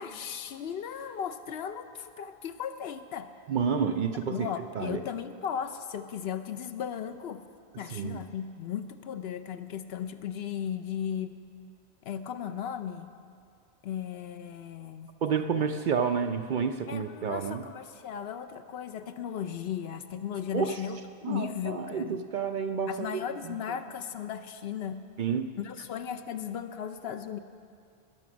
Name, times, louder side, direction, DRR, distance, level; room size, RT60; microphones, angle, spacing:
voice 1, 0.0-3.3 4.3-7.4 7.8-11.4 12.0-13.1 13.8-15.1 16.9-22.2 22.9-25.0 25.6-27.4, left 8 dB, 70° left, 10 dB, 0.8 m, -36 dB
voice 2, 3.5-4.5 4.7-5.0 7.9-8.2 15.2-17.6 20.5-20.8 21.2-23.6 25.2-25.5, right 6 dB, 60° right, 7 dB, 0.6 m, -30 dB
20.0 x 6.8 x 6.1 m, 2.3 s
omnidirectional pair, 1.1 m